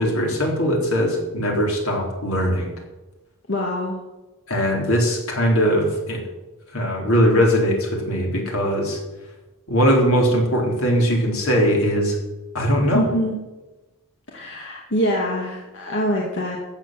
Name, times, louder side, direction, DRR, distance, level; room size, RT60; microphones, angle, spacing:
voice 1, 0.0-2.7 4.5-6.2 6.7-9.0 9.7-12.2 12.5-13.1, equal, 70° left, 0 dB, 3.8 m, -20 dB
voice 2, 3.5-4.0 12.9-13.4 14.3-16.6, equal, 55° left, -2 dB, 2.2 m, -24 dB
15.0 x 8.2 x 7.6 m, 1.1 s
head